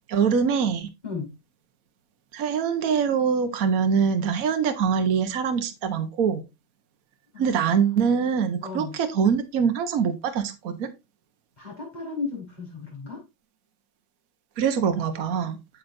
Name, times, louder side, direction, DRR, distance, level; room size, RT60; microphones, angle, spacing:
voice 1, 0.1-0.9 2.3-6.4 7.4-10.9 14.6-15.6, right 6 dB, 50° right, 7 dB, 1.3 m, -24 dB
voice 2, 7.3-8.1 8.6-9.0 11.6-13.2, left 4 dB, 20° left, -3 dB, 4.6 m, -35 dB
8.9 x 7.3 x 2.6 m, 0.24 s
omnidirectional pair, 2.1 m